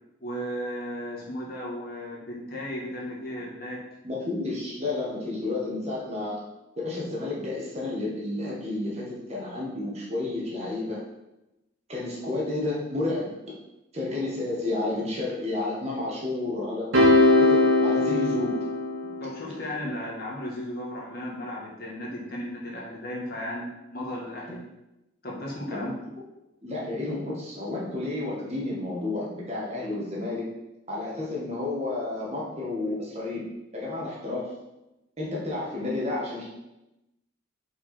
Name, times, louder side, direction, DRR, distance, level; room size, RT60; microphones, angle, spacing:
voice 1, 0.2-3.8 19.2-24.6 25.2-25.9, equal, 50° left, -4 dB, 1.6 m, -35 dB
voice 2, 4.0-6.4 6.8-11.0 11.9-13.4 13.9-16.9 17.4-18.6 25.7-25.9 26.6-30.5 30.9-33.4 33.7-34.5 35.2-36.4, left 2 dB, 30° right, -5 dB, 1.5 m, -31 dB
sound 1, 16.9-19.4, left 2 dB, 90° right, 1.7 m, -20 dB
5.5 x 4.9 x 4.4 m, 0.95 s
head